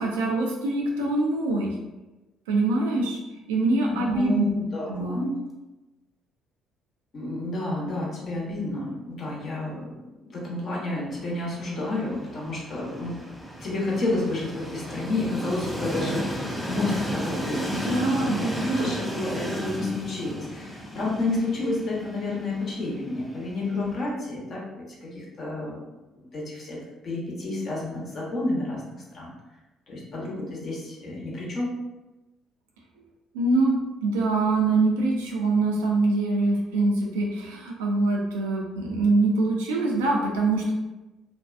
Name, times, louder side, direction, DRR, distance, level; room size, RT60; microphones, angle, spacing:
voice 1, 0.0-1.7 2.5-3.2 3.5-4.4 4.9-5.2 17.7-18.9 33.3-33.8 34.0-40.7, right 2 dB, 85° right, -1 dB, 0.4 m, -24 dB
voice 2, 3.9-5.3 7.1-13.2 13.6-25.8 26.3-28.8 29.1-29.3 29.9-31.7, left 2 dB, 50° left, -4 dB, 1.0 m, -30 dB
Train, 11.1-24.1, equal, 10° left, 0.6 m, -34 dB
2.5 x 2.2 x 2.4 m, 1.1 s
hypercardioid pair, 55°, 0 cm